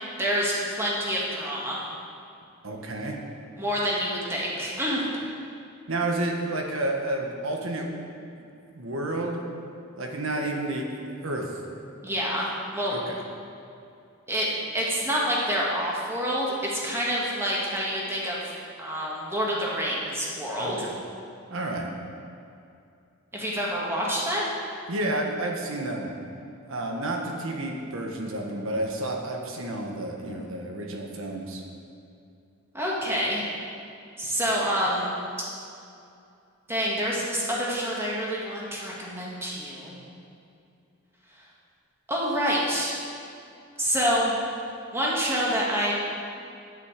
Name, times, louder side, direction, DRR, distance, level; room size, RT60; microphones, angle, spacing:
voice 1, 0.2-1.8 3.6-5.0 12.0-13.0 14.3-18.5 18.8-20.9 23.3-24.5 32.7-33.4 34.2-35.2 36.7-40.0 42.1-42.9 43.8-44.3 44.9-45.9, equal, 10° right, -5 dB, 1.9 m, -27 dB
voice 2, 2.6-3.2 5.9-7.9 8.6-9.4 9.9-11.4 12.9-13.1 20.6-20.9 21.5-21.9 24.9-26.1 26.6-31.6, right 1 dB, 65° right, 1 dB, 1.3 m, -30 dB
9.0 x 6.3 x 8.1 m, 2.5 s
head